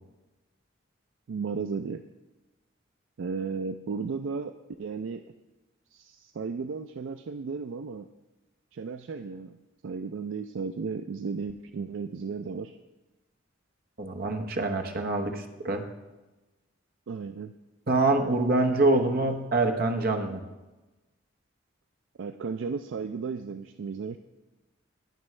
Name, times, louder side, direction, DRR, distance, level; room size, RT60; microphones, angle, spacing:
voice 1, 1.3-2.0 3.2-5.2 5.9-8.1 8.7-9.6 9.8-12.8 17.1-17.5 22.2-24.2, right 5 dB, 70° right, 8 dB, 0.4 m, -34 dB
voice 2, 14.0-15.8 17.9-20.4, right 2 dB, 45° right, 5 dB, 0.9 m, -25 dB
18.0 x 6.2 x 3.2 m, 1.1 s
head